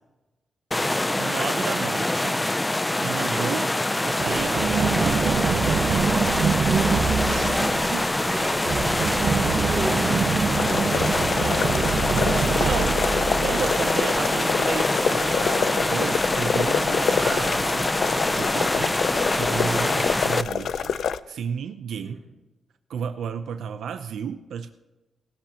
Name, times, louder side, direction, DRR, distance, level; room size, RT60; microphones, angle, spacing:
sound 1, 0.7-20.4, left 1 dB, 10° left, 0.4 m, -24 dB
voice 1, 1.2-2.5 3.0-3.7 4.0-6.0 7.8-8.1 12.3-13.0 13.4-17.9 18.3-21.0 21.3-22.2 22.9-24.7, right 7 dB, 90° right, 8 dB, 0.5 m, -33 dB
Run, 4.2-13.9, right 6 dB, 70° right, 1.0 m, -26 dB
voice 2, 6.6-7.7 8.2-8.8 9.1-10.2 10.7-14.7 22.0-22.3, right 2 dB, 25° right, -4 dB, 5.2 m, -38 dB
sound 2, 10.5-21.2, left 7 dB, 75° left, 0.4 m, -27 dB
18.0 x 13.0 x 2.9 m, 1.1 s
wide cardioid pair, 125°, 0 cm